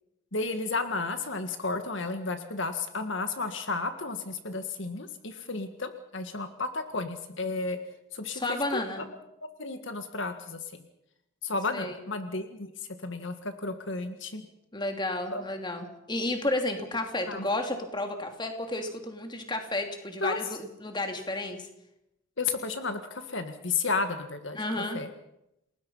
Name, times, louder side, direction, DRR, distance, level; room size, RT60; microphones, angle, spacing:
voice 1, 0.3-7.8 8.1-8.4 8.7-8.9 9.6-10.6 11.4-12.7 13.0-14.5 15.3-15.4 17.3-17.4 20.2-20.4 22.4-24.6 24.9-25.1, left 3 dB, 60° left, 7 dB, 1.7 m, -32 dB
voice 2, 8.3-9.0 11.7-12.0 14.7-21.7 24.5-25.0, left 2 dB, 20° left, 4 dB, 2.8 m, -32 dB
29.0 x 20.0 x 5.6 m, 0.84 s
head